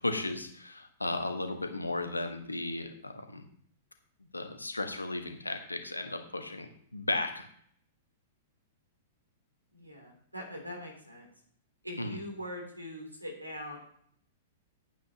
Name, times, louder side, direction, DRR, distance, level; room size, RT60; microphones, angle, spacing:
voice 1, 0.0-3.4 4.3-7.5 12.0-12.2, left 2 dB, 80° left, 6 dB, 1.3 m, -35 dB
voice 2, 9.7-11.3 11.8-13.8, equal, 85° right, 1 dB, 3.0 m, -42 dB
10.5 x 9.1 x 2.9 m, 0.63 s
figure-of-eight pair, 105°, 0 cm